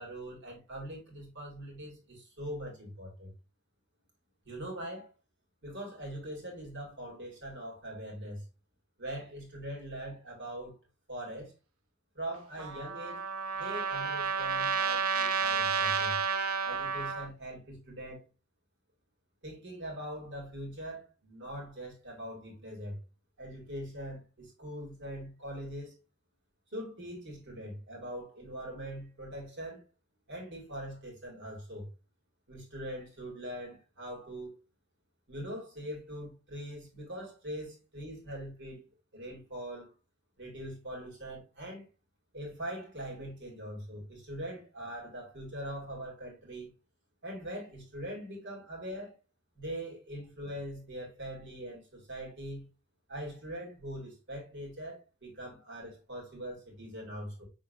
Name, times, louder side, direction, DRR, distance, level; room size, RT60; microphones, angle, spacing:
voice 1, 0.0-3.3 4.4-5.1 5.6-8.4 9.0-10.7 11.1-11.5 12.1-13.2 13.5-16.2 16.6-18.2 19.4-23.0 23.4-25.9 26.7-29.8 30.3-31.9 32.5-34.6 35.3-38.8 39.1-39.9 40.4-41.8 42.3-46.7 47.2-49.1 49.6-52.7 53.1-57.4, right 1 dB, 55° right, 2.2 m, -42 dB
Trumpet, 12.6-17.3, right 6 dB, 80° right, 0.7 m, -31 dB
5.9 x 3.7 x 2.4 m
head